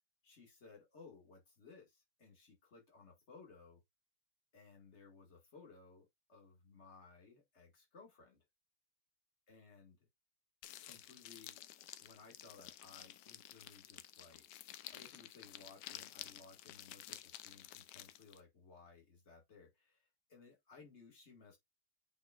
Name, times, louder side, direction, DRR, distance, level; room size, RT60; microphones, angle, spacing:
voice 1, 0.2-3.8 4.5-8.4 9.5-10.0 10.8-11.6 12.0-14.4 14.9-21.6, left 4 dB, 35° left, 2.2 m, -60 dB
sound 1, 10.6-18.4, left 12 dB, 70° left, 1.1 m, -52 dB
8.2 x 5.0 x 2.4 m
omnidirectional pair, 2.3 m